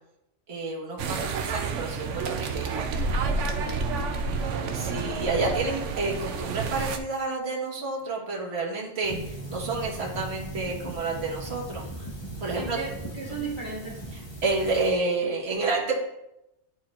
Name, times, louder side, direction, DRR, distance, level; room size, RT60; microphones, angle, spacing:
voice 1, 0.5-2.9 4.1-4.2 4.7-12.1 12.4-12.8 14.1-16.0, right 3 dB, 60° right, -3 dB, 1.7 m, -30 dB
sound 1, 1.0-7.0, right 4 dB, 85° right, 1.0 m, -29 dB
voice 2, 3.6-4.1 4.4-4.9 12.5-12.9 13.2-14.0, right 4 dB, 30° right, -8 dB, 2.4 m, -36 dB
sound 2, 9.0-14.9, right 2 dB, 25° left, 1.1 m, -38 dB
11.5 x 4.4 x 2.4 m, 0.89 s
omnidirectional pair, 1.2 m